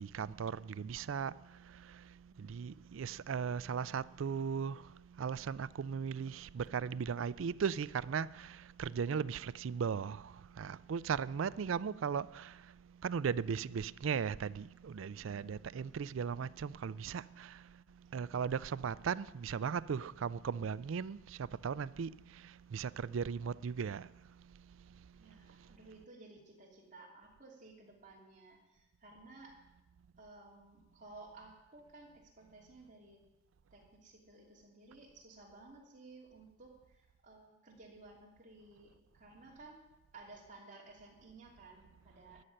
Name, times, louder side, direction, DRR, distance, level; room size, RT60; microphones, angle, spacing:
voice 1, 0.0-1.4 1.8-2.0 2.4-4.8 5.2-12.6 13.0-17.6 18.1-22.2 22.4-24.1, right 6 dB, 80° right, 0.4 m, -37 dB
voice 2, 15.1-15.7 25.2-29.5 30.2-33.2 33.7-39.8 40.1-42.4, right 2 dB, 40° right, 3.0 m, -56 dB
13.5 x 6.6 x 9.8 m
head